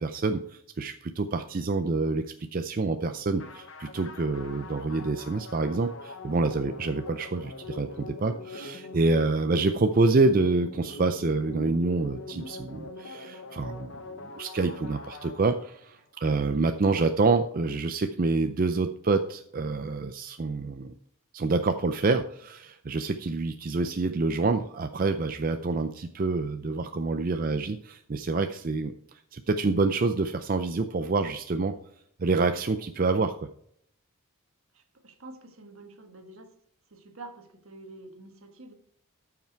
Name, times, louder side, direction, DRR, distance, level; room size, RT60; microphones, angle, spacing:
voice 1, 0.0-2.2 2.5-20.9 21.3-31.7 32.2-33.3, right 3 dB, 40° right, 7 dB, 0.4 m, -27 dB
sound 1, 3.4-15.9, left 3 dB, 60° left, 0.9 m, -43 dB
voice 2, 34.7-36.5 36.9-38.7, right 2 dB, 70° right, 6 dB, 1.4 m, -47 dB
13.5 x 5.9 x 4.5 m, 0.68 s
head